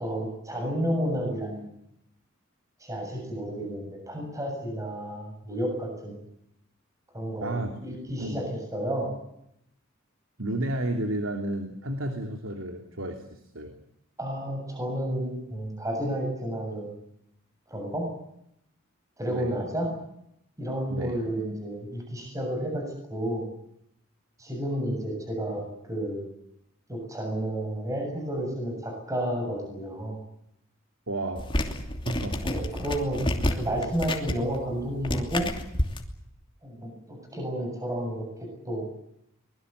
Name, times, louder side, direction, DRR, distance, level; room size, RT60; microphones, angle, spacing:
voice 1, 0.0-1.7 2.8-6.2 7.1-9.1 14.2-16.9 17.7-18.1 19.2-19.9 20.6-23.4 24.4-26.3 26.9-30.2 32.4-35.5 36.6-38.2 38.6-38.9, right 1 dB, 15° right, 2 dB, 7.5 m, -31 dB
voice 2, 7.4-7.7 8.2-8.4 10.4-13.8 19.3-19.6 20.9-21.2 31.1-31.5 32.0-32.4, right 1 dB, 80° right, 5 dB, 3.0 m, -32 dB
sound 1, 31.4-36.0, left 1 dB, 25° left, 2.9 m, -30 dB
24.5 x 21.0 x 8.2 m, 0.77 s
head